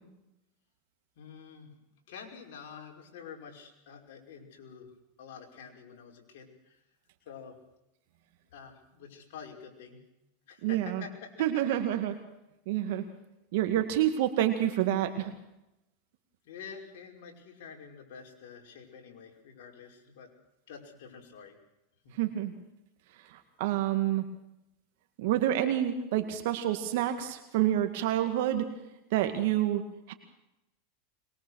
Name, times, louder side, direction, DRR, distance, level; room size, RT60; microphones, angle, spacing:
voice 1, 1.2-1.8 2.1-4.9 5.2-6.8 7.3-7.6 8.5-10.0 10.5-11.3 16.5-20.3 20.7-21.6 22.0-22.1, left 6 dB, 70° left, 2 dB, 5.5 m, -48 dB
voice 2, 10.6-11.0 11.4-12.1 12.7-13.0 13.5-15.3 22.1-22.5 23.3-24.3 25.2-28.7 29.1-29.8 30.1-30.2, right 12 dB, 70° right, 6 dB, 2.1 m, -28 dB
22.5 x 22.0 x 6.5 m, 0.90 s
supercardioid pair, 120°, 0 cm